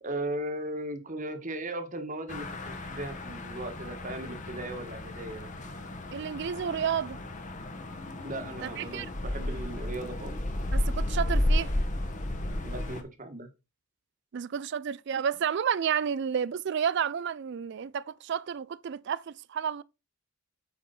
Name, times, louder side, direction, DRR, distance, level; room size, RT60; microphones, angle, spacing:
voice 1, 0.0-5.5 8.2-10.4 12.6-13.5, right 1 dB, 40° right, 1.4 m, -37 dB
sound 1, 2.3-13.0, left 1 dB, 40° left, 1.1 m, -33 dB
voice 2, 6.1-7.2 8.6-9.1 10.7-11.7 14.3-19.8, right 7 dB, 55° right, 0.4 m, -31 dB
8.7 x 5.0 x 4.2 m
head